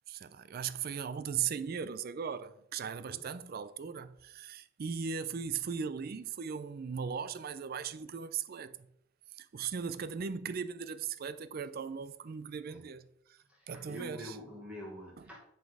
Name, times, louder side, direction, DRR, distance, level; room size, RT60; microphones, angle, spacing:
voice 1, 0.1-8.9 9.3-13.4 13.7-14.4 15.2-15.3, right 6 dB, 50° right, 0.4 m, -38 dB
voice 2, 13.5-15.4, equal, 5° right, 1.4 m, -46 dB
9.1 x 4.1 x 4.8 m
head